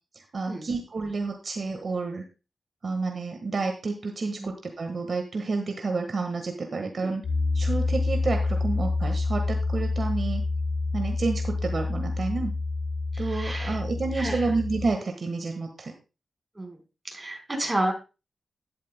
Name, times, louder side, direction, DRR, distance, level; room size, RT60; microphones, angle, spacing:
voice 1, 0.1-2.2 2.8-7.2 7.5-10.4 10.9-12.5 13.2-15.9, right 3 dB, 55° right, 4 dB, 1.4 m, -30 dB
Piano, 7.2-14.9, left 3 dB, 70° left, 2.8 m, -28 dB
voice 2, 13.1-13.8 14.1-14.5 16.5-16.8 17.1-17.9, right 1 dB, 20° right, 3 dB, 4.2 m, -31 dB
12.0 x 11.5 x 2.2 m, 0.31 s
cardioid pair, 80°, 0 cm